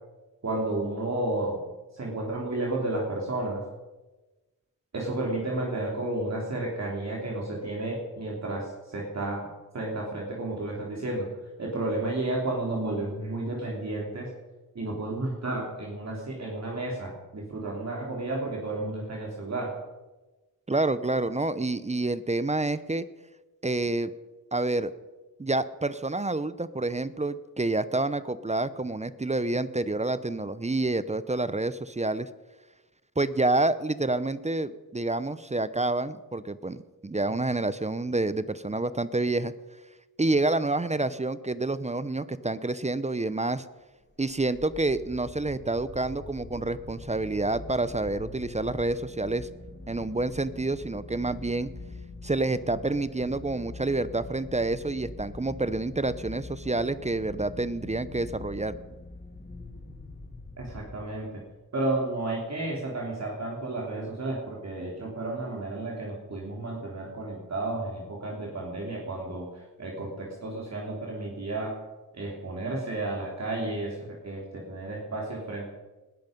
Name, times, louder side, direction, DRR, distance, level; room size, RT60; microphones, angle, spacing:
voice 1, 0.4-1.6 1.9-3.6 4.9-9.5 9.7-11.3 11.6-14.3 14.8-19.8 60.6-61.3 61.7-69.5 69.8-71.8 72.1-75.7, right 2 dB, 45° right, -2 dB, 3.6 m, -32 dB
voice 2, 20.7-23.0 23.6-24.1 24.5-24.9 25.4-32.3 33.2-39.5 40.2-43.6 44.2-49.5 49.9-51.7 52.2-58.8, right 2 dB, 20° right, 15 dB, 0.8 m, -28 dB
sound 1, 44.0-61.4, left 3 dB, 30° left, 2.9 m, -44 dB
20.0 x 13.0 x 5.3 m, 1.1 s
cardioid pair, 80°, 37 cm